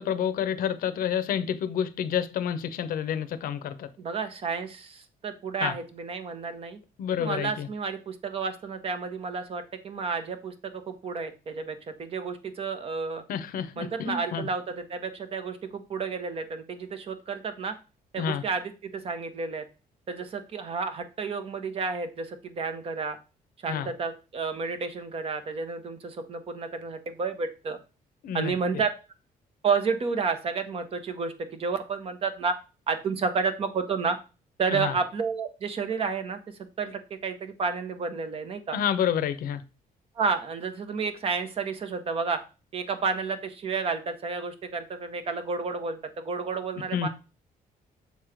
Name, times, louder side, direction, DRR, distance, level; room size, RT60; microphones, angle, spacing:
voice 1, 0.0-3.9 5.6-5.7 7.0-7.7 13.3-14.5 18.2-18.4 23.7-23.9 28.2-28.5 34.7-35.0 38.7-39.6 46.9-47.1, left 9 dB, 65° left, 0.6 m, -29 dB
voice 2, 4.0-6.8 7.2-13.2 13.8-17.7 18.1-19.6 20.1-23.2 23.6-27.8 28.3-28.9 29.6-32.5 32.9-34.2 34.6-36.4 36.8-38.8 40.1-42.4 42.7-47.1, right 5 dB, 40° right, 0.8 m, -31 dB
6.8 x 3.1 x 4.9 m
cardioid pair, 175°, 16 cm